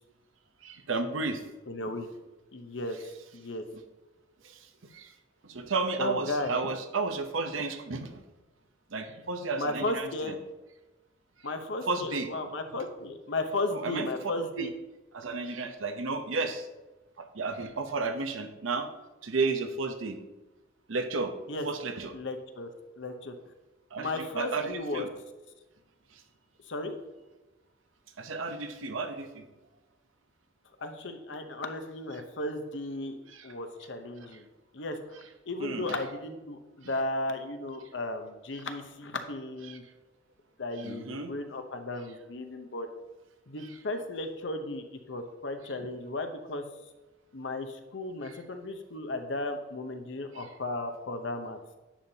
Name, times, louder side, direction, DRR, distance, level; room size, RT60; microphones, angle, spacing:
voice 1, 0.6-1.4 3.7-3.8 4.4-5.1 5.4-8.2 8.9-10.4 11.9-12.3 13.7-14.1 14.6-14.7 15.1-16.7 17.2-18.9 19.2-20.2 20.9-21.3 21.6-22.1 23.9-25.1 26.1-26.2 28.2-29.5 33.3-33.5 34.3-34.4 35.6-36.0 38.6-38.7 39.7-39.8 40.8-41.3 43.6-43.8 48.2-48.4 50.3-50.5, right 3 dB, 85° right, 7 dB, 0.8 m, -33 dB
voice 2, 1.7-2.1 2.5-3.0 3.3-3.6 6.0-6.6 9.6-10.4 11.4-14.7 21.5-21.6 22.1-22.7 23.0-23.3 24.0-25.1 26.7-27.0 30.8-33.2 33.4-34.4 34.7-35.0 35.5-39.8 40.6-42.9 43.5-46.6 47.3-51.6, left 2 dB, 65° left, 7 dB, 0.9 m, -35 dB
10.0 x 7.1 x 2.8 m, 1.1 s
head